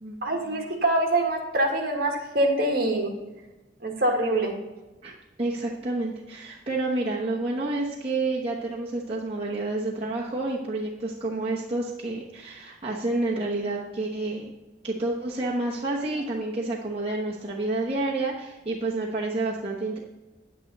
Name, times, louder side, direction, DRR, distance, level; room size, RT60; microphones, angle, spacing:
voice 1, 0.2-3.1 3.8-4.5, right 1 dB, 55° right, 2 dB, 1.8 m, -24 dB
voice 2, 5.4-14.5 14.8-20.0, right 2 dB, 30° right, -4 dB, 1.0 m, -29 dB
9.5 x 9.1 x 4.0 m, 1.1 s
head